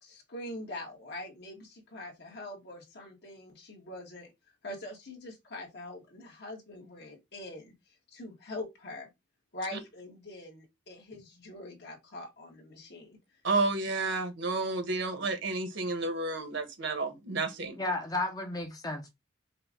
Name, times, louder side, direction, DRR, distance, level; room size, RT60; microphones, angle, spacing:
voice 1, 0.0-4.3 4.6-7.7 8.1-9.1 9.5-13.2, left 1 dB, 55° left, 1.9 m, -43 dB
voice 2, 13.4-17.8, right 3 dB, 60° right, 1.3 m, -31 dB
voice 3, 17.8-19.1, left 2 dB, 20° left, 0.9 m, -33 dB
5.6 x 2.5 x 3.7 m
head